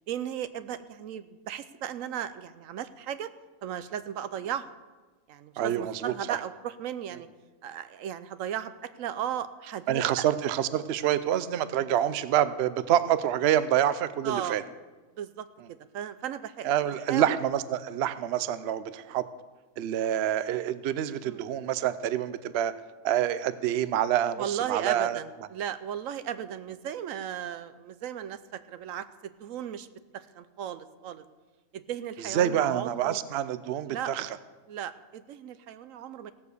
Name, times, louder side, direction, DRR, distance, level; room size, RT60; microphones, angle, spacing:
voice 1, 0.1-3.3 3.6-4.7 5.3-7.3 7.6-8.7 9.0-10.3 14.2-14.6 15.2-16.7 17.1-17.4 21.2-21.4 24.4-29.9 30.1-31.2 31.7-33.2 33.9-34.1 34.7-36.3, right 9 dB, 80° right, 13 dB, 1.0 m, -36 dB
voice 2, 5.6-6.4 9.9-14.6 16.6-19.2 19.8-22.7 23.0-25.2 32.2-34.3, right 11 dB, 60° right, 14 dB, 0.8 m, -27 dB
16.5 x 7.1 x 6.7 m, 1.2 s
omnidirectional pair, 1.4 m